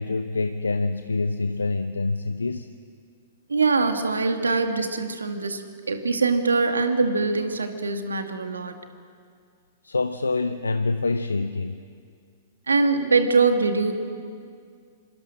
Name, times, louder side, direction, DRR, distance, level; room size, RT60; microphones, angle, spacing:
voice 1, 0.0-2.7 9.8-11.8, left 3 dB, 85° left, 10 dB, 0.8 m, -26 dB
voice 2, 3.5-5.6 5.9-8.8 12.7-13.9, right 4 dB, 80° right, 7 dB, 2.1 m, -23 dB
25.5 x 24.5 x 6.5 m, 2.2 s
figure-of-eight pair, 105°, 0 cm